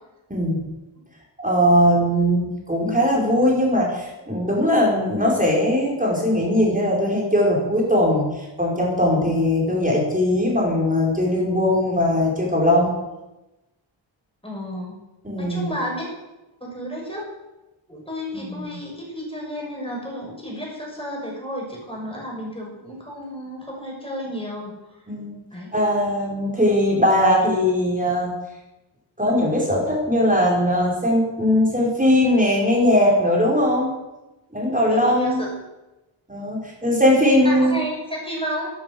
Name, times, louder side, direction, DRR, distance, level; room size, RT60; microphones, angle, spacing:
voice 1, 0.3-0.6 1.4-8.3 8.6-12.9 15.2-15.7 18.3-18.7 25.1-25.4 25.7-28.3 29.2-33.9 34.5-35.5 36.3-37.8, left 1 dB, 15° right, -3 dB, 5.4 m, -20 dB
voice 2, 14.4-15.0 15.4-16.1 16.6-17.3 17.9-25.0 25.5-25.8 34.8-35.5 37.4-38.7, equal, 10° left, -2 dB, 6.2 m, -32 dB
12.0 x 10.5 x 8.1 m, 1.0 s
wide cardioid pair, 95°, 48 cm